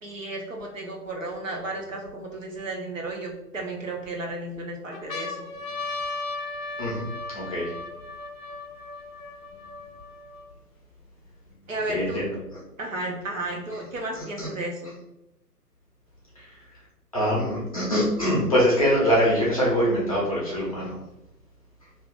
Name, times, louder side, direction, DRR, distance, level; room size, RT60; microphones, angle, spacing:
voice 1, 0.0-5.5 11.7-12.2 12.8-15.0, right 2 dB, 55° right, 0 dB, 0.6 m, -33 dB
sound 1, 0.6-0.7 1.4-2.6 3.3-4.1 4.6-4.7 4.9-10.5 11.3-11.4 11.5-12.5 13.5-14.5, left 3 dB, 60° left, 0.5 m, -37 dB
voice 2, 7.3-7.7 11.9-12.3 14.2-14.5 16.4-16.6 17.1-21.0, equal, 20° left, -7 dB, 0.7 m, -23 dB
2.5 x 2.3 x 3.5 m, 0.88 s
figure-of-eight pair, 135°, 48 cm